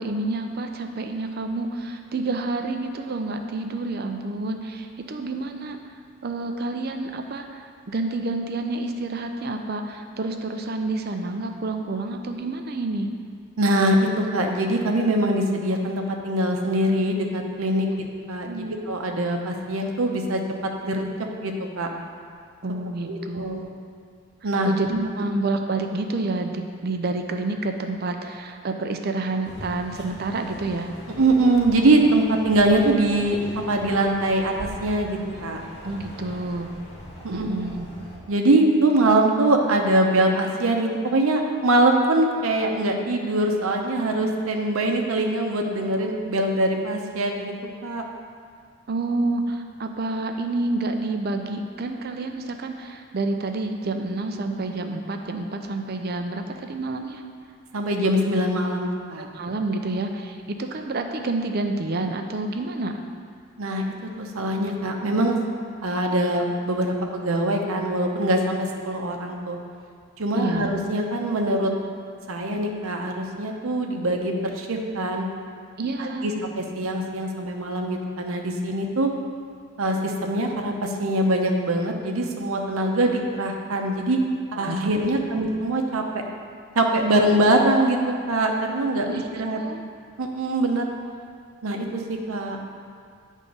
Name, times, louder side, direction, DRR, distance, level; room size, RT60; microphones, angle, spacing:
voice 1, 0.0-5.8 6.2-13.1 17.9-18.0 18.4-18.7 22.6-23.7 24.6-30.9 35.8-36.7 37.3-37.9 48.9-57.2 59.2-62.9 70.3-70.7 75.8-76.3 84.5-85.0 89.1-89.3 89.6-89.8, right 2 dB, 50° right, 5 dB, 0.5 m, -29 dB
voice 2, 13.6-18.5 18.9-21.0 21.4-21.9 23.0-23.6 24.4-24.7 31.1-33.4 33.7-35.6 37.2-37.5 38.3-47.5 47.8-48.0 57.7-59.3 63.6-65.4 65.8-69.6 70.2-71.7 72.3-75.3 76.0-79.1 79.8-84.2 84.5-86.2 86.7-88.0 88.3-89.6 90.2-90.9 91.6-92.6, right 1 dB, 80° right, 2 dB, 0.8 m, -23 dB
sound 1, 29.4-38.2, left 1 dB, 30° left, 1.3 m, -41 dB
9.4 x 3.7 x 5.3 m, 2.1 s
head